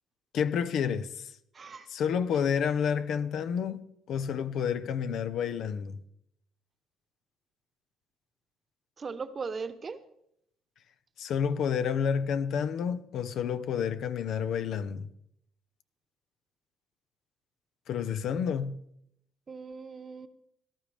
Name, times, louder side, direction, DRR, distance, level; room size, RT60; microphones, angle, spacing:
voice 1, 0.3-1.3 1.9-6.0 11.2-15.1 17.9-18.8, left 7 dB, 65° left, 0.7 m, -30 dB
voice 2, 1.5-1.9 9.0-10.0 19.5-20.3, right 5 dB, 35° right, 1.0 m, -38 dB
18.0 x 12.5 x 3.5 m
cardioid pair, 105°, 0 cm